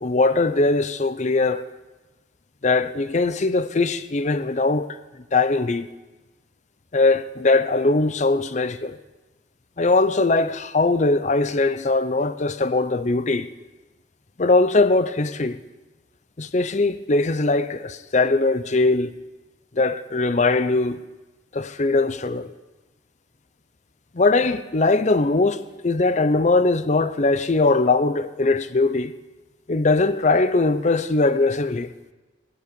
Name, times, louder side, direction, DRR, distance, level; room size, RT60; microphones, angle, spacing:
voice 1, 0.0-1.7 2.6-4.9 5.3-5.9 6.9-9.0 9.8-13.5 14.4-15.6 16.4-19.1 19.7-21.0 21.5-22.5 24.1-29.1 29.7-31.9, left 3 dB, 40° left, 0.6 m, -20 dB
17.0 x 12.5 x 5.3 m
head